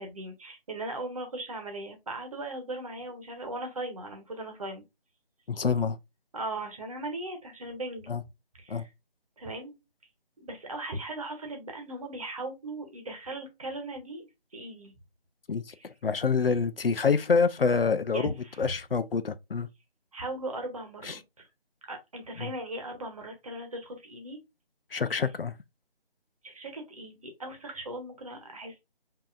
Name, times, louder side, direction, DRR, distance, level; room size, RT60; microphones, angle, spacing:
voice 1, 0.0-4.8 6.3-8.1 8.6-8.8 9.4-9.8 10.4-14.3 14.5-14.9 15.7-15.8 18.1-18.7 20.1-21.5 21.9-24.4 26.4-28.8, right 2 dB, 35° right, 1.2 m, -38 dB
voice 2, 5.5-6.0 8.1-8.2 8.7-8.8 15.5-15.7 16.0-18.3 18.6-19.7 21.0-21.2 22.4-22.5 24.9-25.5, left 5 dB, 65° left, 0.6 m, -26 dB
5.4 x 2.8 x 2.5 m
figure-of-eight pair, 160°, 31 cm